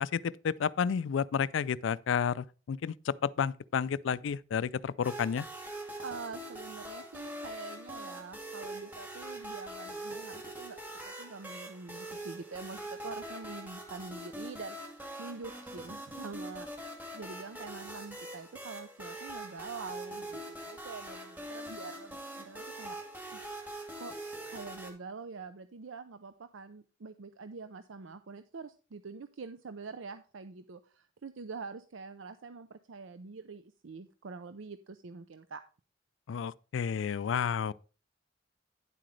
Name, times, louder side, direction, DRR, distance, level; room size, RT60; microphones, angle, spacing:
voice 1, 0.0-5.5 36.3-37.7, left 7 dB, 70° left, 0.4 m, -31 dB
sound 1, 5.0-24.9, right 1 dB, 10° right, 2.1 m, -43 dB
voice 2, 6.0-23.0 23.3-23.4 24.0-24.1 24.4-35.6, right 4 dB, 80° right, 0.6 m, -45 dB
10.0 x 7.7 x 3.2 m
head